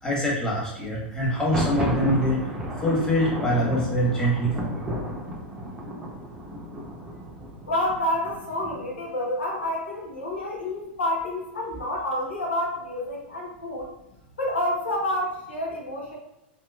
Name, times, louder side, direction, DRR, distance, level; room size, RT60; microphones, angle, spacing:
voice 1, 0.0-2.4 2.8-4.8, equal, 10° left, -5 dB, 1.2 m, -24 dB
Thunder, 1.3-9.0, equal, 15° right, 0.6 m, -32 dB
voice 2, 7.7-13.9 14.4-16.2, left 1 dB, 90° left, -2 dB, 0.8 m, -28 dB
2.9 x 2.8 x 2.3 m, 0.94 s
hypercardioid pair, 105°, 6 cm